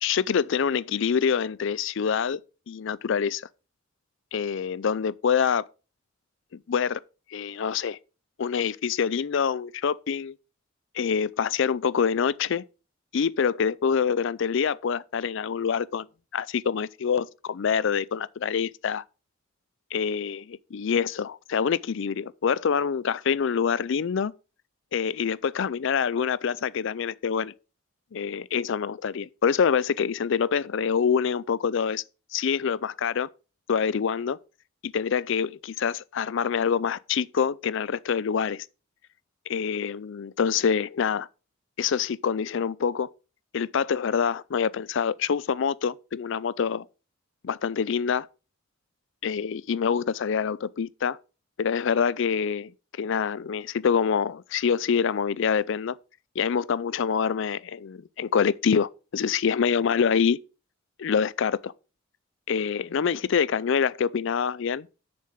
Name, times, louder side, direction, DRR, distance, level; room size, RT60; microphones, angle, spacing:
voice 1, 0.0-2.4 2.7-3.4 4.3-5.6 6.7-7.0 7.3-8.0 8.4-10.4 10.9-12.6 13.1-16.1 16.3-19.0 19.9-24.3 24.9-27.5 28.1-32.0 32.3-33.3 33.7-34.4 34.8-38.7 39.5-41.3 41.8-43.1 43.5-46.8 47.4-48.3 49.2-51.2 51.6-52.7 53.0-56.0 56.4-60.4 61.0-61.7 62.5-64.9, left 6 dB, 65° left, 0.4 m, -26 dB
6.8 x 6.7 x 5.1 m
head